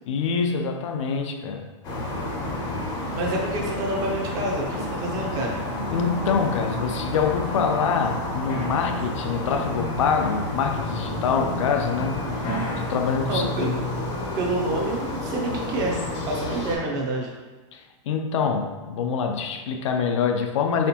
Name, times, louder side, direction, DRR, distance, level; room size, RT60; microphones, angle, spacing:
voice 1, 0.1-1.7 5.9-12.2 12.8-13.8 17.7-20.9, left 6 dB, 75° left, 0.5 m, -25 dB
sound 1, 1.8-16.8, left 1 dB, 25° left, 0.6 m, -30 dB
voice 2, 3.1-5.6 13.2-13.7 14.3-17.3, right 2 dB, 25° right, 0.5 m, -28 dB
4.2 x 3.4 x 2.8 m
supercardioid pair, 170°, 16 cm